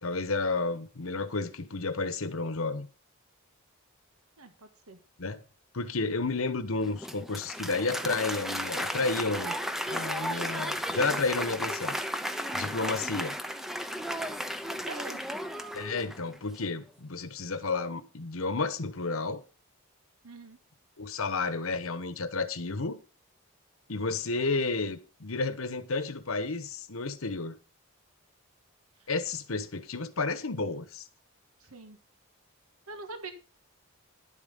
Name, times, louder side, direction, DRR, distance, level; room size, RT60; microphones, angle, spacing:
voice 1, 0.0-2.9 5.2-5.4 5.7-9.6 9.9-12.0 12.5-13.4 15.7-19.4 21.0-23.0 23.9-27.6 29.1-31.1, left 3 dB, 70° left, 1.1 m, -31 dB
voice 2, 4.4-5.0 14.9-15.2 20.2-20.6 31.6-32.0 32.9-33.3, right 3 dB, 90° right, 1.6 m, -43 dB
Applause, 6.8-16.4, equal, ahead, 0.6 m, -34 dB
11.0 x 7.5 x 5.4 m
head